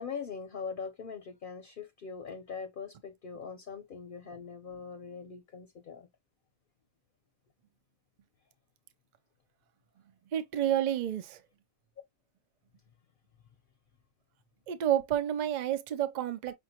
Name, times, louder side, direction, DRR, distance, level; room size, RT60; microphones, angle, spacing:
voice 1, 0.0-6.1, left 6 dB, 50° left, 0.7 m, -41 dB
voice 2, 10.3-11.4 14.7-16.5, right 11 dB, 85° right, 0.4 m, -30 dB
5.8 x 2.5 x 2.8 m
omnidirectional pair, 1.5 m